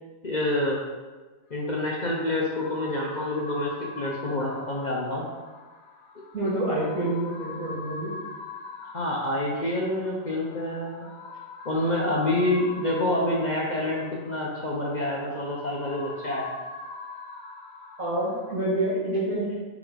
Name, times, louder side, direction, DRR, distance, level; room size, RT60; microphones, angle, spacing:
voice 1, 0.2-0.8 1.5-5.2 8.9-11.0 11.6-16.5, left 1 dB, 35° left, -4 dB, 0.8 m, -27 dB
sound 1, 1.5-18.5, left 3 dB, 80° left, 1.3 m, -43 dB
voice 2, 6.3-8.2 18.0-19.5, right 1 dB, 75° right, -9 dB, 2.1 m, -27 dB
8.2 x 3.6 x 3.9 m, 1.3 s
omnidirectional pair, 1.5 m